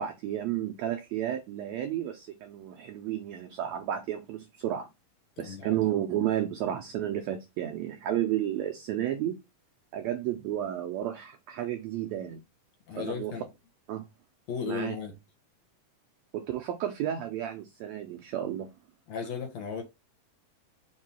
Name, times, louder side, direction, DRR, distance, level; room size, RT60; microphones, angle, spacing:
voice 1, 0.0-4.9 5.4-9.4 9.9-12.4 12.9-13.4 13.9-14.1 14.7-14.9 16.3-18.7, right 11 dB, 90° right, 1.5 m, -32 dB
voice 2, 5.4-5.8 12.9-13.5 14.5-15.1 19.1-19.8, left 6 dB, 65° left, 2.1 m, -35 dB
5.5 x 2.2 x 4.3 m
omnidirectional pair, 3.7 m